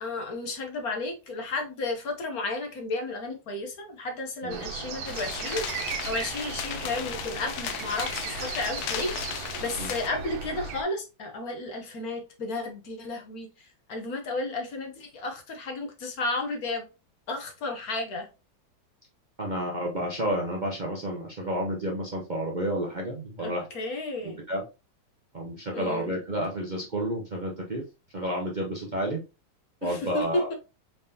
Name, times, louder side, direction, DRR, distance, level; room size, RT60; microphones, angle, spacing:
voice 1, 0.0-5.6 6.0-16.9 17.3-18.3 23.4-24.4 25.7-26.1 29.8-30.2 30.5-30.6, left 2 dB, 55° left, 1.3 m, -33 dB
sound 1, 4.5-10.8, right 5 dB, 85° right, 1.5 m, -36 dB
sound 2, 5.1-10.1, left 9 dB, 70° left, 0.9 m, -36 dB
voice 2, 19.4-23.7 24.2-24.6 25.3-27.8 28.1-29.2 29.8-30.5, equal, 50° right, 0.5 m, -30 dB
4.5 x 3.6 x 2.7 m
omnidirectional pair, 2.1 m